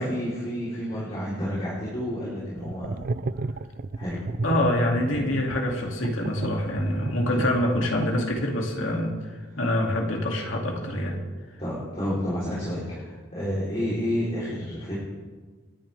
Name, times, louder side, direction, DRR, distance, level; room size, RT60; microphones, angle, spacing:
voice 1, 0.0-3.0 3.9-4.2 11.6-15.0, equal, 30° left, -8 dB, 3.7 m, -30 dB
sound 1, 2.6-8.7, right 3 dB, 45° right, 0.4 m, -33 dB
voice 2, 4.4-9.1 9.6-11.2, left 1 dB, 70° left, 0 dB, 2.5 m, -25 dB
28.5 x 10.5 x 3.5 m, 1.4 s
head